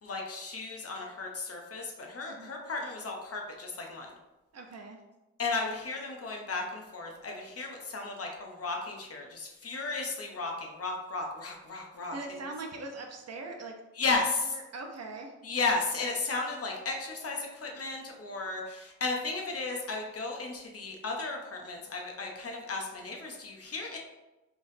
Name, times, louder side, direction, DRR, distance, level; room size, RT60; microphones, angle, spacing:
voice 1, 0.0-4.1 5.4-12.1 14.0-14.5 15.4-24.0, left 3 dB, 50° left, 1 dB, 0.7 m, -34 dB
voice 2, 4.5-5.0 12.1-13.7 14.0-14.1 14.5-15.3, right 3 dB, 55° right, 3 dB, 0.7 m, -41 dB
3.7 x 3.3 x 2.7 m, 1.0 s
cardioid pair, 95°, 30 cm